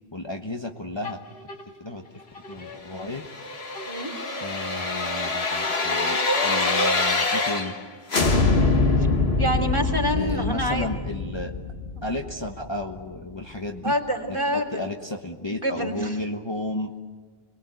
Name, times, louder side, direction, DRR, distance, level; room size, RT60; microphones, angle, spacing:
voice 1, 0.1-1.2 1.8-2.0 2.5-3.3 4.4-6.2 6.4-7.7 10.1-11.5 12.0-13.9 14.3-16.9, left 1 dB, 25° left, 2 dB, 1.3 m, -33 dB
sound 1, 1.0-3.4 3.7-6.6, left 2 dB, 65° left, 2.1 m, -43 dB
sound 2, 3.1-7.8 8.1-13.0 13.3-13.4, left 3 dB, 85° left, 1.9 m, -24 dB
voice 2, 9.4-10.9 12.0-12.1 13.8-14.8 15.4-16.2, equal, 30° right, 1 dB, 3.1 m, -27 dB
28.5 x 20.5 x 9.4 m, 1.5 s
omnidirectional pair, 1.0 m